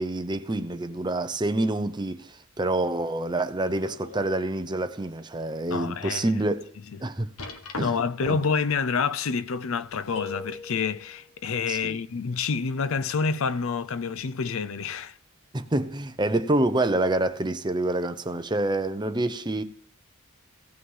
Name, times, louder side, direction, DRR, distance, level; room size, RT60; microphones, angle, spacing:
voice 1, 0.0-6.7 7.0-7.3 7.8-7.9 8.3-8.4 11.7-12.0 15.5-19.6, right 2 dB, 20° right, 0.7 m, -27 dB
sound 1, 3.5-4.3 4.8-4.9 5.5-5.6 7.4-8.3 9.6-10.4 11.3-11.4, left 3 dB, 90° left, 1.5 m, -41 dB
voice 2, 5.7-6.3 7.8-15.2, left 5 dB, 70° left, 0.5 m, -28 dB
sound 2, 10.2-11.3, left 6 dB, 30° left, 1.5 m, -39 dB
16.0 x 5.8 x 5.5 m
head